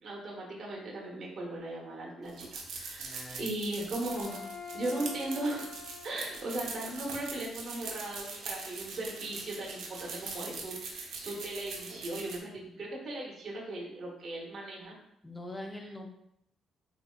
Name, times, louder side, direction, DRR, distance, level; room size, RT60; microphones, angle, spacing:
voice 1, 0.0-4.4 4.7-5.6 6.0-14.9, right 1 dB, 50° right, -3 dB, 0.9 m, -38 dB
sound 1, 2.2-12.4, right 4 dB, 75° right, 0.6 m, -42 dB
voice 2, 3.0-3.5 15.2-16.1, left 1 dB, 15° left, 3 dB, 0.5 m, -43 dB
Bowed string instrument, 3.8-7.3, left 5 dB, 90° left, 0.7 m, -46 dB
sound 2, 6.4-11.4, right 1 dB, 20° right, 1.2 m, -57 dB
4.2 x 2.7 x 2.2 m, 0.77 s
cardioid pair, 90°, 0 cm